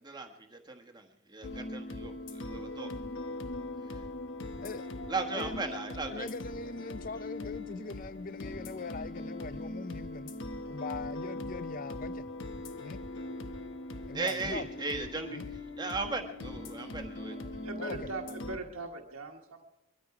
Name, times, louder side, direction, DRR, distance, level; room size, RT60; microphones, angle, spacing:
voice 1, 0.0-2.9 3.9-4.0 5.1-6.3 14.1-15.4 15.8-17.3, right 3 dB, 20° right, 1.3 m, -37 dB
sound 1, 1.4-18.6, left 2 dB, 55° left, 1.0 m, -41 dB
voice 2, 5.3-5.6 6.1-10.4 10.7-12.3 12.8-13.0 14.1-14.7 15.3-15.5 17.8-18.0, left 4 dB, 40° left, 0.5 m, -41 dB
voice 3, 17.5-19.6, right 2 dB, 80° right, 1.4 m, -40 dB
22.5 x 12.5 x 4.8 m
head